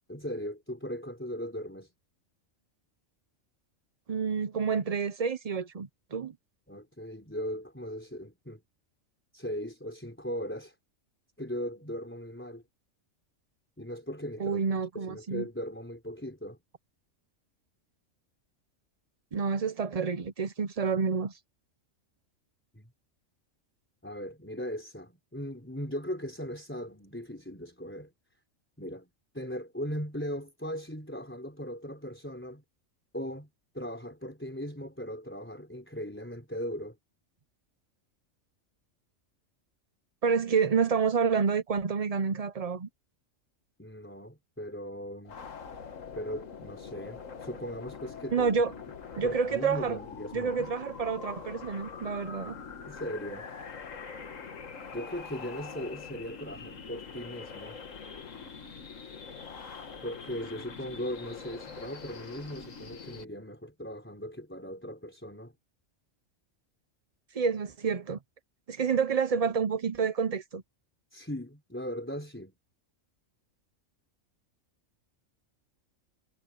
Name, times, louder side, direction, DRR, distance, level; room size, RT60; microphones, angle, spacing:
voice 1, 0.1-1.9 6.7-8.6 9.3-10.8 11.4-12.6 13.8-14.6 14.9-16.6 22.7-22.9 24.0-28.1 28.8-32.6 33.1-33.5 33.7-37.0 43.8-45.4 46.1-48.5 49.2-50.7 52.8-53.5 54.9-57.8 60.0-65.5 71.1-72.5, equal, 10° left, 4.2 m, -38 dB
voice 2, 4.1-6.3 14.4-15.5 19.3-21.4 40.2-42.9 48.3-48.7 49.2-50.0 50.3-52.6 67.3-68.2 68.7-70.6, right 5 dB, 40° right, 0.6 m, -28 dB
sound 1, 45.2-63.2, left 5 dB, 75° left, 1.9 m, -44 dB
omnidirectional pair, 1.4 m